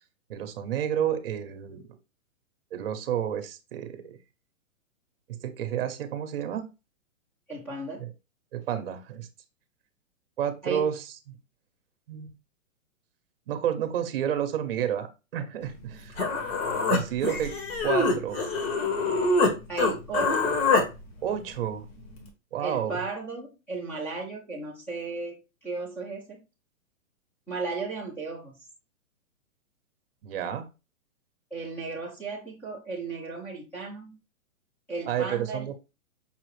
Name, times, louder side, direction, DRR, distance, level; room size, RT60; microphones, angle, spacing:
voice 1, 0.3-2.0 2.7-4.2 5.3-6.7 8.0-8.1 8.5-9.3 10.4-11.4 12.1-12.3 13.5-16.2 16.9-17.5 17.8-18.4 21.2-21.9 22.5-23.0 30.2-30.7 35.1-35.7, right 9 dB, 45° right, 9 dB, 0.8 m, -30 dB
voice 2, 7.5-8.1 10.6-10.9 19.7-20.6 22.6-26.4 27.5-28.5 31.5-34.2 34.9-35.7, right 3 dB, 5° left, -3 dB, 0.6 m, -35 dB
Human voice, 15.8-15.9 16.2-19.5 19.8-20.9, left 3 dB, 50° left, 1.3 m, -25 dB
5.6 x 2.4 x 3.1 m, 0.28 s
hypercardioid pair, 160°, 41 cm